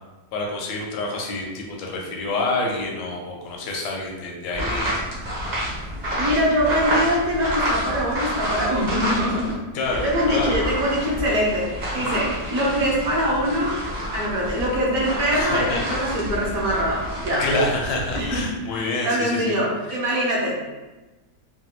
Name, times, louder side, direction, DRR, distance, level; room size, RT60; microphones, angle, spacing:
voice 1, 0.3-5.3 9.7-10.6 12.0-12.2 15.3-15.8 17.4-19.6 19.9-20.0, left 2 dB, 80° left, -1 dB, 1.2 m, -27 dB
sound 1, 4.5-9.5 9.8-18.4, equal, 45° right, 0.6 m, -29 dB
voice 2, 6.2-9.6 9.9-13.8 14.1-17.4 18.1-20.7, equal, 65° right, -4 dB, 1.1 m, -23 dB
3.3 x 2.2 x 2.7 m, 1.2 s
omnidirectional pair, 1.8 m